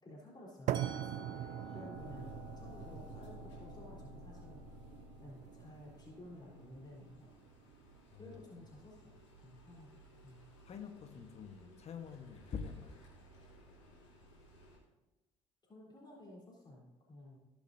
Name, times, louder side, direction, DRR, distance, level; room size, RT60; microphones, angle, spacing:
voice 1, 0.0-4.6 5.2-7.5 8.2-9.1 9.4-10.5 15.6-17.4, left 1 dB, 30° left, 3.7 m, -54 dB
Musical instrument, 0.7-6.6, left 2 dB, 30° right, 1.8 m, -56 dB
sound 1, 0.7-8.7, right 12 dB, 55° right, 0.4 m, -43 dB
voice 2, 1.5-2.5 8.1-8.7 10.6-13.0, left 6 dB, 45° left, 1.2 m, -48 dB
sound 2, 1.9-14.8, left 4 dB, 85° left, 3.3 m, -57 dB
18.5 x 6.9 x 2.7 m
hypercardioid pair, 50°, 15 cm